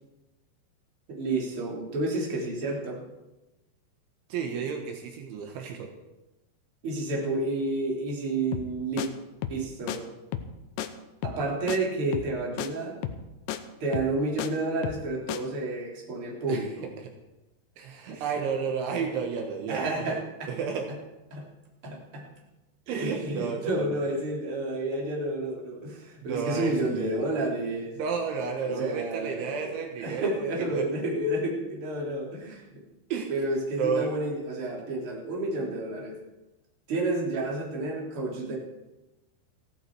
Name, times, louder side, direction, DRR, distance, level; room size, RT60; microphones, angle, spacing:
voice 1, 1.1-3.0 6.8-9.1 9.5-10.0 11.2-13.0 13.8-16.9 18.1-18.2 19.0-19.1 19.7-20.5 21.3-21.5 21.8-22.3 22.9-28.0 28.7-32.8 33.3-36.2 36.9-38.6, right 2 dB, 30° right, -2 dB, 3.4 m, -30 dB
voice 2, 4.3-5.9 16.5-16.6 17.8-19.8 20.1-20.2 20.5-20.9 22.9-24.0 26.2-27.1 28.0-30.3 30.7-30.9 33.1-33.3 33.8-34.1, right 6 dB, 75° right, 2 dB, 3.7 m, -31 dB
sound 1, 8.5-8.7 9.0-9.1 9.4-9.6 9.9-10.0 10.3-10.5 10.8-10.9 11.2-11.4 11.7-11.8 12.1-12.3 12.6-12.7 13.0-13.2 13.5-13.6 13.9-14.5 14.8-15.0 15.3-15.4, left 10 dB, 80° left, 2.8 m, -33 dB
16.0 x 15.0 x 4.7 m, 1.0 s
omnidirectional pair, 5.6 m